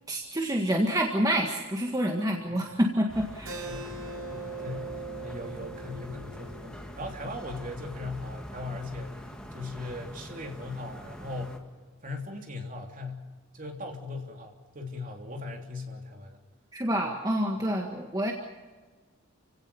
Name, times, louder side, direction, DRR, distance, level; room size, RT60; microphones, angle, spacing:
voice 1, 0.1-3.7 16.7-18.3, equal, 15° right, 1 dB, 1.7 m, -27 dB
sound 1, 3.1-11.6, equal, 5° left, 2.0 m, -44 dB
Keyboard (musical), 3.5-8.6, right 3 dB, 80° right, 5.4 m, -42 dB
voice 2, 3.7-9.2 9.5-11.6 12.0-13.3 13.5-16.4, left 2 dB, 40° right, 3 dB, 3.2 m, -39 dB
29.0 x 17.0 x 7.1 m, 1.4 s
head